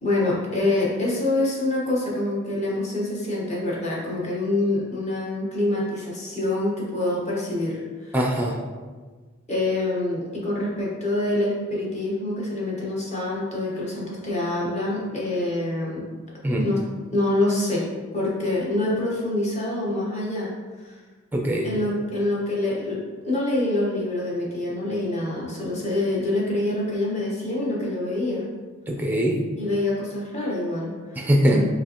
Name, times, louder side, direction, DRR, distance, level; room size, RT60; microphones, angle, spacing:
voice 1, 0.0-8.1 9.5-16.0 16.6-16.8 17.1-17.8 18.1-20.5 20.8-20.9 21.6-23.0 23.2-28.5 29.6-31.6, left 2 dB, 30° left, -6 dB, 1.2 m, -26 dB
voice 2, 8.1-8.6 16.4-16.7 21.3-21.7 28.9-29.4 31.2-31.6, equal, 10° right, 0 dB, 0.5 m, -22 dB
5.4 x 3.2 x 3.0 m, 1.4 s
head